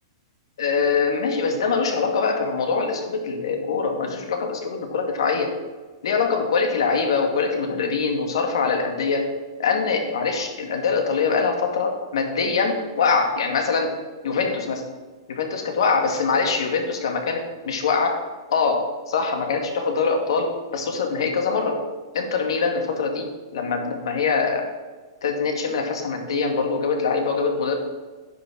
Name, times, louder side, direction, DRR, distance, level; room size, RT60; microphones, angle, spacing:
voice 1, 0.6-5.6 6.0-9.3 9.6-13.9 14.2-14.8 15.3-18.2 18.5-21.8 22.1-24.7 25.2-27.8, left 5 dB, 85° left, 4 dB, 2.2 m, -23 dB
10.5 x 6.5 x 6.4 m, 1.4 s
supercardioid pair, 165°, 3 cm